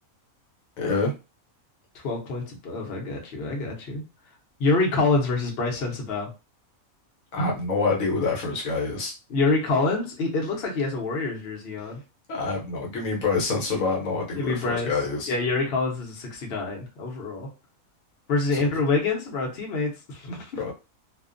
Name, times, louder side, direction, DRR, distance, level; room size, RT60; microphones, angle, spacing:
voice 1, 0.8-1.1 7.3-9.1 12.3-15.3 18.5-18.6 20.6-20.7, left 3 dB, 75° left, -1 dB, 1.1 m, -26 dB
voice 2, 1.9-4.0 4.6-6.3 9.3-12.0 14.3-14.9 15.3-17.5 18.3-20.5, left 3 dB, 55° left, -1 dB, 0.9 m, -26 dB
2.5 x 2.1 x 2.4 m, 0.29 s
omnidirectional pair, 1.5 m